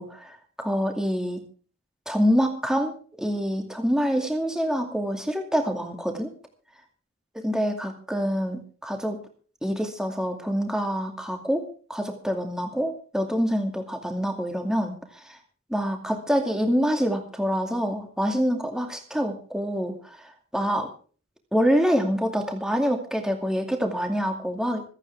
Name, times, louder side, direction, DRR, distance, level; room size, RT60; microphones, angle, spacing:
voice 1, 0.0-1.4 2.1-6.3 7.4-9.2 9.6-11.6 11.9-15.4 15.7-20.9 21.5-24.8, equal, 5° right, 3 dB, 2.4 m, -26 dB
26.5 x 9.1 x 3.5 m, 0.41 s
head